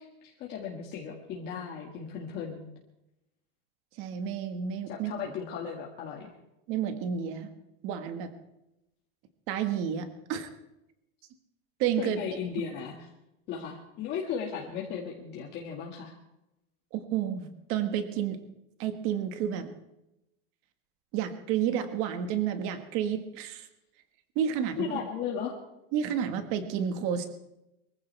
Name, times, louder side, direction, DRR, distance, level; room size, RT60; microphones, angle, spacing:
voice 1, 0.0-2.7 4.9-6.3 12.0-13.1 13.5-16.2 24.8-25.5, left 7 dB, 35° left, -2 dB, 2.2 m, -36 dB
voice 2, 4.0-5.3 6.7-7.5 7.8-8.3 9.5-10.5 11.8-12.2 16.9-18.4 18.8-19.7 21.1-23.7 24.3-24.8 25.9-27.3, right 8 dB, 45° right, 8 dB, 1.8 m, -30 dB
23.5 x 15.0 x 3.5 m, 0.88 s
supercardioid pair, 170°, 29 cm